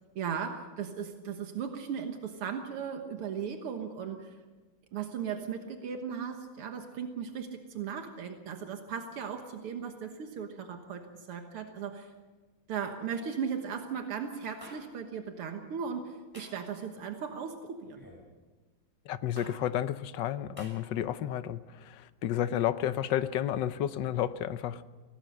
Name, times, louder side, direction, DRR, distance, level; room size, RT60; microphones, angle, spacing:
voice 1, 0.2-4.3 4.9-12.1 12.7-18.0, right 7 dB, 80° right, 5 dB, 2.3 m, -37 dB
sound 1, 14.6-14.8 16.3-16.6 17.9-18.2 19.4-19.5 20.6-20.7, equal, 10° left, 6.5 m, -48 dB
voice 2, 19.1-24.8, left 11 dB, 65° left, 12 dB, 1.3 m, -31 dB
23.0 x 18.0 x 6.5 m, 1.3 s
omnidirectional pair, 2.4 m